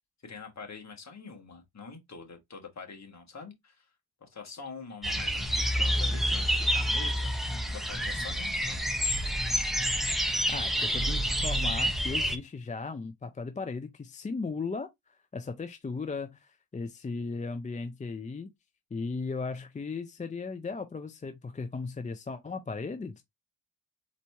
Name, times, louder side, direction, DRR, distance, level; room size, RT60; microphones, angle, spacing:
voice 1, 0.2-3.8 4.2-9.0, left 5 dB, 35° left, 1.5 m, -45 dB
sound 1, 5.0-12.4, equal, ahead, 0.8 m, -28 dB
voice 2, 10.5-18.5 18.9-23.2, left 4 dB, 20° left, 0.4 m, -36 dB
4.0 x 3.1 x 3.3 m
cardioid pair, 95°, 47 cm